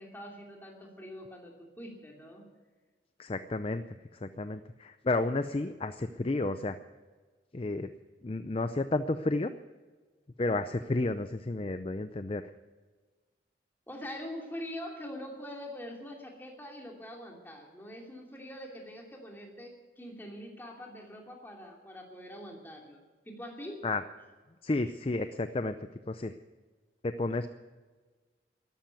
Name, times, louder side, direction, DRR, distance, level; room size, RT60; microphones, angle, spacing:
voice 1, 0.0-2.5 13.9-23.0 23.3-23.8, equal, 10° left, 0 dB, 2.8 m, -44 dB
voice 2, 3.2-3.8 4.1-6.8 7.5-7.9 8.2-9.5 10.4-12.4 23.8-24.0 24.6-25.8 26.1-26.4 27.0-27.5, left 2 dB, 30° left, 10 dB, 0.5 m, -31 dB
13.5 x 11.5 x 9.3 m, 1.4 s
head